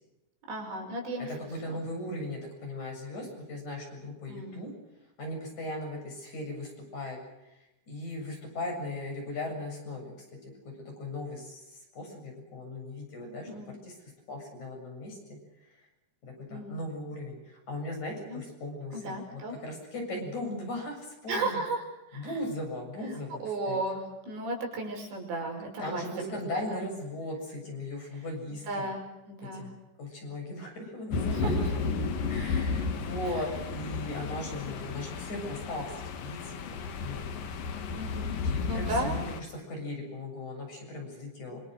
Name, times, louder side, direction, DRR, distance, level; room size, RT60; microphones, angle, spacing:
voice 1, 0.5-1.3 1.6-1.8 4.3-4.6 13.5-13.7 16.5-16.8 18.2-18.4 18.9-19.6 21.3-21.8 22.1-22.3 23.4-26.9 28.5-29.7 31.3-31.8 33.2-33.4 37.9-38.4 38.6-39.2, right 2 dB, 80° right, 2 dB, 8.1 m, -35 dB
voice 2, 1.2-4.7 5.2-7.2 7.9-10.1 10.6-13.5 13.8-13.9 14.3-15.4 15.7-15.9 16.2-21.6 22.1-23.8 25.8-28.9 29.5-31.5 32.3-37.3 38.4-41.6, left 1 dB, 40° left, 2 dB, 8.5 m, -38 dB
sound 1, 31.1-39.4, left 4 dB, 60° left, 3.3 m, -33 dB
27.0 x 26.5 x 6.5 m, 0.96 s
omnidirectional pair, 5.1 m